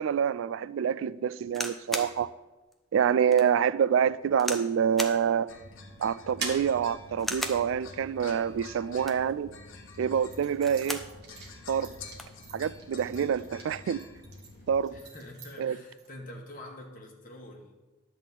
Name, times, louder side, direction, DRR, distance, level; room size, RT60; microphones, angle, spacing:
voice 1, 0.0-2.3 2.9-5.5 6.0-9.5 10.0-11.0 11.7-11.9 12.5-14.0 14.7-14.9 15.6-15.8, right 7 dB, 70° right, 0.3 m, -27 dB
sound 1, 1.5-2.2 2.7-2.8 3.3-3.5 4.4-4.7 5.0-5.2 6.2-6.6 7.2-7.7 8.9-9.3 10.4-11.1 11.5-11.6 11.9-12.4 13.2-13.5, equal, ahead, 0.5 m, -36 dB
sound 2, 5.5-15.0, left 3 dB, 70° left, 1.1 m, -48 dB
sound 3, 5.6-9.2 9.8-16.1, right 4 dB, 55° right, 1.7 m, -45 dB
voice 2, 14.9-17.7, left 1 dB, 40° left, 1.5 m, -46 dB
10.5 x 4.1 x 7.4 m
head